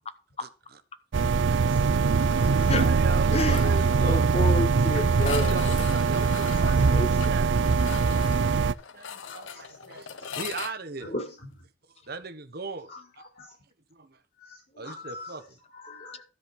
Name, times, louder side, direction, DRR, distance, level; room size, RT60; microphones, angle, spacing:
voice 1, 0.4-0.8 1.4-1.8 2.6-4.3 5.5-7.8 8.9-11.1 12.1-12.9 13.9-14.2 14.8-15.4, right 3 dB, 50° right, 1.4 m, -38 dB
sound 1, 1.1-8.7, right 5 dB, 70° right, 0.5 m, -22 dB
voice 2, 1.4-1.9 2.4-2.9 3.5-3.8 4.9-5.1 6.4-6.9 9.3-10.4 11.0-11.6 12.9-13.5 14.4-16.2, left 1 dB, 50° left, 4.7 m, -42 dB
sound 2, 3.1-3.6 3.9-4.0 4.3-4.4 5.1-10.7, left 7 dB, 80° left, 0.9 m, -40 dB
voice 3, 4.0-5.6 6.9-7.1, left 2 dB, 30° left, 1.2 m, -29 dB
13.0 x 5.2 x 7.3 m
head